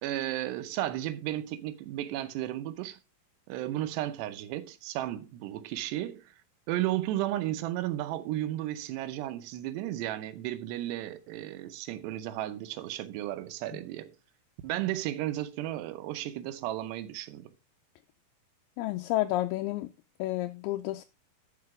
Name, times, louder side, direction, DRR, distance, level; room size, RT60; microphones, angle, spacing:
voice 1, 0.0-3.0 3.5-6.3 6.7-14.1 14.6-17.5, right 14 dB, 90° right, 2.9 m, -34 dB
voice 2, 18.8-19.9 20.2-21.0, left 16 dB, 80° left, 2.3 m, -30 dB
11.5 x 4.8 x 4.8 m
omnidirectional pair, 4.7 m